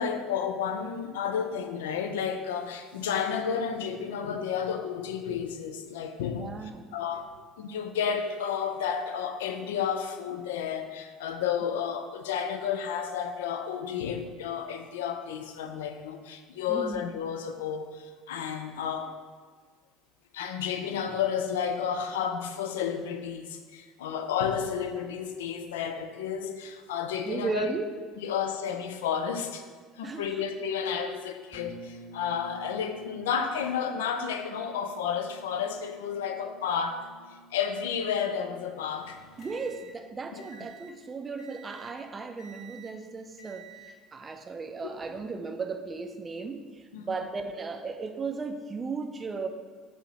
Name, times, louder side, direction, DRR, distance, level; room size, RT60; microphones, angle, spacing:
voice 1, 0.0-6.6 6.9-19.1 20.3-27.7 28.2-29.7 30.0-37.1 37.5-39.2 40.3-40.7 46.9-47.1, left 7 dB, 75° left, 7 dB, 0.3 m, -32 dB
voice 2, 6.4-6.9 16.7-17.0 27.3-27.9 30.0-30.4 39.4-49.5, right 4 dB, 30° right, 6 dB, 0.4 m, -36 dB
sound 1, 31.5-41.2, right 2 dB, 30° left, 1.0 m, -51 dB
sound 2, 39.0-41.0 41.4-42.0 42.4-43.0 43.4-44.0 44.8-45.1, right 6 dB, 50° left, 0.7 m, -51 dB
4.4 x 2.8 x 4.1 m, 1.5 s
hypercardioid pair, 65°, 0 cm